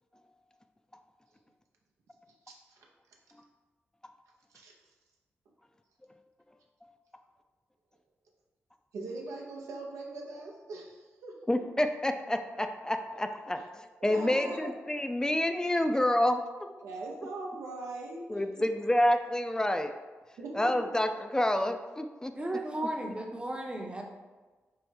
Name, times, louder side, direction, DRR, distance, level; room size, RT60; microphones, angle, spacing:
voice 1, 2.5-2.9 4.5-4.7 8.9-11.4 13.5-13.6 14.0-14.7 16.8-18.7 20.4-21.0, right 2 dB, 85° right, -1 dB, 0.5 m, -41 dB
voice 2, 11.5-16.4 18.3-19.9 20.5-22.3, left 1 dB, 15° left, 7 dB, 0.3 m, -28 dB
voice 3, 22.3-24.0, right 1 dB, 20° right, 1 dB, 0.6 m, -35 dB
4.5 x 2.0 x 3.2 m, 1.3 s
supercardioid pair, 45°, 5 cm